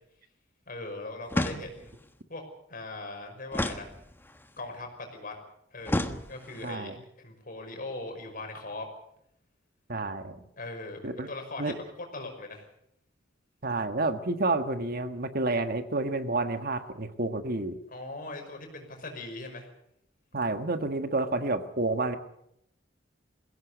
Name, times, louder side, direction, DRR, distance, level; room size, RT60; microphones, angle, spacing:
voice 1, 0.7-1.9 2.3-2.4 2.7-3.9 4.6-5.3 5.7-8.9 10.6-12.7 17.9-19.7, left 2 dB, 50° left, 4 dB, 5.6 m, -40 dB
sound 1, 1.3-2.0 3.5-4.5 5.9-6.7, left 1 dB, 10° left, 1.3 m, -32 dB
voice 2, 6.6-6.9 9.9-10.5 11.0-11.3 11.6-11.7 13.6-17.8 20.3-22.2, right 2 dB, 55° right, 9 dB, 1.6 m, -29 dB
21.5 x 16.5 x 8.3 m, 0.75 s
head